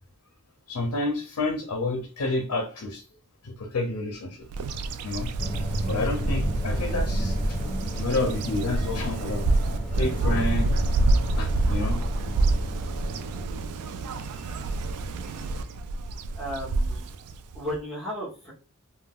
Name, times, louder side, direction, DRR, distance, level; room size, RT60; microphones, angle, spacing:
voice 1, 0.7-3.0 3.4-4.5 5.0-5.3 5.9-7.6 7.9-9.6 9.9-10.8 11.4-12.0 14.2-14.7 15.3-15.5, left 2 dB, 75° left, 4 dB, 0.5 m, -30 dB
Bird vocalization bird call bird song, 4.5-17.8, right 2 dB, 80° right, 0.3 m, -28 dB
sound 1, 5.4-13.5, equal, 15° left, 1.2 m, -30 dB
voice 2, 16.4-17.1 17.5-18.5, equal, ahead, -9 dB, 0.8 m, -34 dB
2.3 x 2.2 x 3.4 m, 0.37 s
head